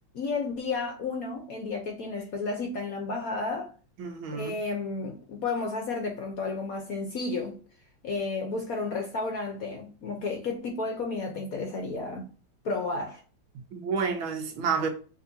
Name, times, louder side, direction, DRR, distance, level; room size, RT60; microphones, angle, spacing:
voice 1, 0.1-3.7 4.3-7.6 8.0-12.3 12.6-13.2, left 3 dB, 60° left, 1.0 m, -32 dB
voice 2, 4.0-4.6 13.7-14.9, right 5 dB, 85° right, 1.7 m, -29 dB
6.4 x 2.9 x 2.7 m
omnidirectional pair, 2.2 m